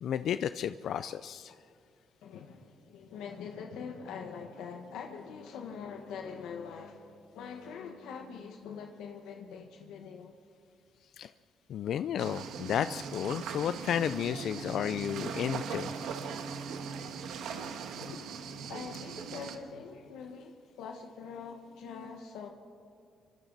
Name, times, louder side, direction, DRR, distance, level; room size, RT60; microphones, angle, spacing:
voice 1, 0.0-1.5 11.2-11.3 11.7-15.9, left 9 dB, 70° left, 13 dB, 0.4 m, -32 dB
voice 2, 2.2-10.3 18.0-18.3 18.6-22.5, left 6 dB, 90° left, 3 dB, 1.4 m, -44 dB
sound 1, 12.2-19.6, right 6 dB, 80° right, 1.5 m, -39 dB
26.5 x 25.0 x 4.1 m, 2.3 s
cardioid pair, 90°, 0 cm